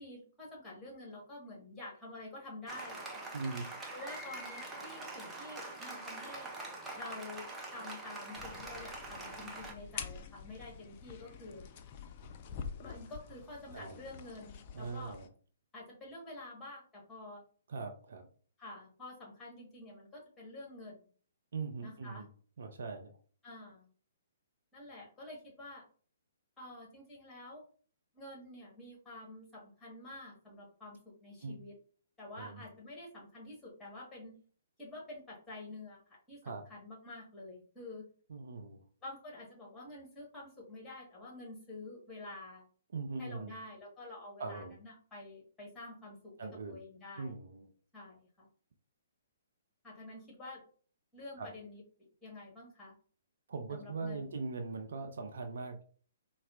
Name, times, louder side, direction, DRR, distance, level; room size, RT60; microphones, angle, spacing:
voice 1, 0.0-3.2 3.9-6.5 6.9-11.6 12.8-15.2 15.7-17.4 18.6-21.1 21.8-22.2 23.4-23.9 24.7-25.8 26.6-27.6 28.1-31.7 32.2-34.3 34.8-38.0 39.0-42.7 43.2-47.3 47.9-48.5 49.8-50.6 51.1-51.8 52.2-52.9 53.7-54.4, left 2 dB, 10° left, -4 dB, 1.5 m, -49 dB
Applause, 2.7-9.7, right 2 dB, 10° right, 0.6 m, -44 dB
voice 2, 3.3-3.7 13.7-14.0 14.7-15.3 17.7-18.3 21.5-22.3 22.6-23.2 31.4-31.6 32.4-32.6 36.4-36.6 38.3-38.8 42.9-43.5 44.4-44.8 46.4-46.8 47.2-47.7 51.4-51.5 53.5-55.8, right 4 dB, 60° right, 5 dB, 0.5 m, -41 dB
sound 1, 8.3-15.3, left 6 dB, 40° left, 0.4 m, -47 dB
4.2 x 2.0 x 2.5 m, 0.44 s
figure-of-eight pair, 125°, 0 cm